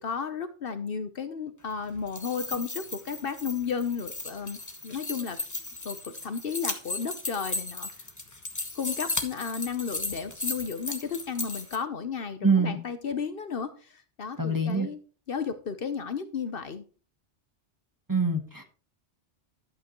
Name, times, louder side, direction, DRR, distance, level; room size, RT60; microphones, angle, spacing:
voice 1, 0.0-5.4 5.8-7.9 8.7-15.0 15.3-16.8, left 6 dB, 55° left, 11 dB, 1.0 m, -33 dB
sound 1, 1.9-11.8, left 2 dB, 15° left, 1.1 m, -36 dB
voice 2, 12.4-12.8 14.4-14.9 18.1-18.6, right 3 dB, 20° right, 5 dB, 1.1 m, -24 dB
12.0 x 7.8 x 3.0 m, 0.37 s
omnidirectional pair, 1.2 m